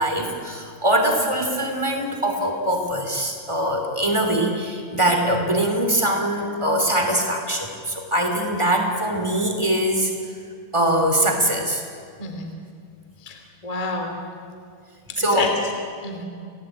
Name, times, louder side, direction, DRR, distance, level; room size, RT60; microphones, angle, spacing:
voice 1, 0.0-10.1 10.7-11.8 15.2-15.5, right 1 dB, 20° right, 3 dB, 0.7 m, -22 dB
voice 2, 12.2-12.6 13.2-14.2 15.1-15.5 16.0-16.2, left 3 dB, 15° left, 3 dB, 1.6 m, -29 dB
30.0 x 17.5 x 8.8 m, 2.2 s
omnidirectional pair, 5.9 m